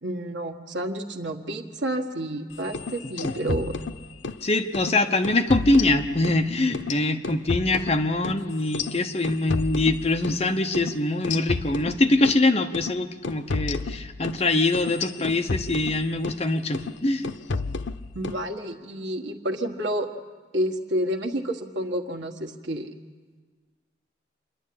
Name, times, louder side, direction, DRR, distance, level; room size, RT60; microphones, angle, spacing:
voice 1, 0.0-3.7 18.1-20.1 20.5-22.9, right 1 dB, 80° right, 4 dB, 1.6 m, -29 dB
sound 1, 2.6-4.4 4.7-4.9 5.2-6.4 6.7-10.4 10.7-10.9 11.2-12.4 12.7-12.9 13.2-16.4 16.7-17.0 17.2-18.4, left 4 dB, 85° left, 0.6 m, -32 dB
voice 2, 4.4-17.3, left 2 dB, 35° left, 6 dB, 0.9 m, -23 dB
27.5 x 11.0 x 8.6 m, 1.4 s
head